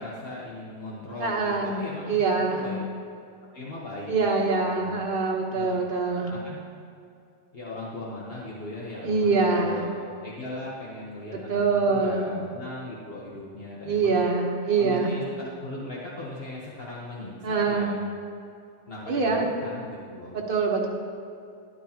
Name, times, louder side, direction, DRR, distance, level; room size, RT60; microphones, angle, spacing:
voice 1, 0.0-2.8 3.5-5.0 5.5-6.6 7.5-14.2 14.8-18.0 18.9-20.4, left 2 dB, 60° left, -5 dB, 1.4 m, -39 dB
voice 2, 1.2-1.8 2.1-2.8 4.1-6.3 9.0-9.9 11.5-12.4 13.9-15.1 17.4-17.9 19.1-19.5 20.3-20.9, right 4 dB, 55° right, 1 dB, 1.4 m, -24 dB
13.0 x 11.0 x 2.9 m, 2.5 s
omnidirectional pair, 1.1 m